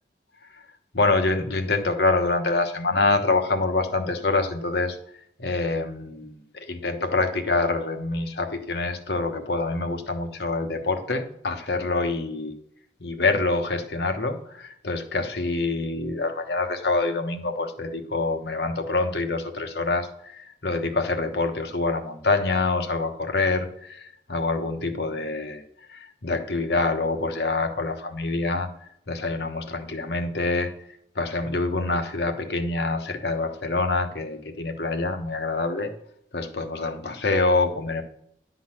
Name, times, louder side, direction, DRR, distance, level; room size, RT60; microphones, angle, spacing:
voice 1, 0.9-5.0 5.4-12.5 13.0-25.6 25.9-30.7 31.1-35.9 36.3-38.0, left 3 dB, 65° left, 5 dB, 1.1 m, -26 dB
11.0 x 4.0 x 7.6 m, 0.73 s
head